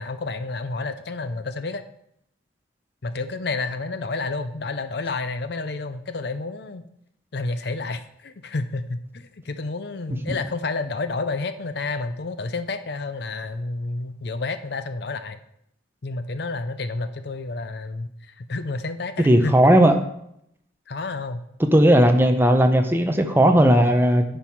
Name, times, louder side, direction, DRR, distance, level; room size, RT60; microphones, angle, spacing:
voice 1, 0.0-1.8 3.0-6.8 7.3-15.4 16.0-19.5 20.9-21.4, left 3 dB, 55° left, 11 dB, 0.6 m, -30 dB
voice 2, 19.2-20.0 21.7-24.2, right 1 dB, 10° right, 6 dB, 0.6 m, -16 dB
10.0 x 5.6 x 4.6 m, 0.75 s
head